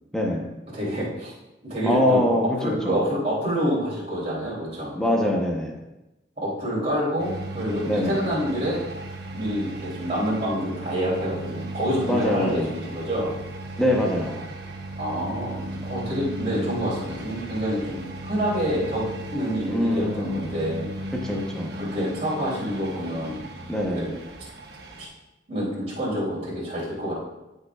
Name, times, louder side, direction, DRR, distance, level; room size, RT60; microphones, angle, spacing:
voice 1, 0.1-0.5 1.8-3.0 5.0-5.8 7.9-8.2 12.1-12.7 13.8-14.4 19.7-20.4 21.1-21.7 23.7-24.0, left 1 dB, 5° left, -1 dB, 0.8 m, -24 dB
voice 2, 0.7-1.3 1.6-2.2 2.5-4.9 6.4-8.8 9.3-13.3 15.0-20.9 21.7-23.4 23.9-24.1 25.0-25.1 25.5-27.1, equal, 35° right, -7 dB, 3.0 m, -27 dB
sound 1, 7.2-25.1, right 1 dB, 55° right, 1.1 m, -36 dB
14.5 x 5.3 x 2.4 m, 0.97 s
head